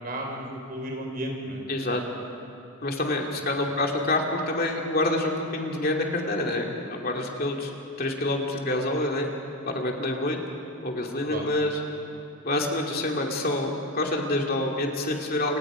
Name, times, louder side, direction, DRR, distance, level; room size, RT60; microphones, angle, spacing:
voice 1, 0.0-2.0 3.7-3.8 11.3-11.5, right 1 dB, 40° right, 1 dB, 4.5 m, -34 dB
voice 2, 1.7-2.0 2.8-7.7 8.0-9.3 9.7-10.4 10.8-11.8 12.4-15.6, left 2 dB, 45° left, 1 dB, 2.7 m, -27 dB
29.5 x 27.0 x 5.1 m, 2.8 s
head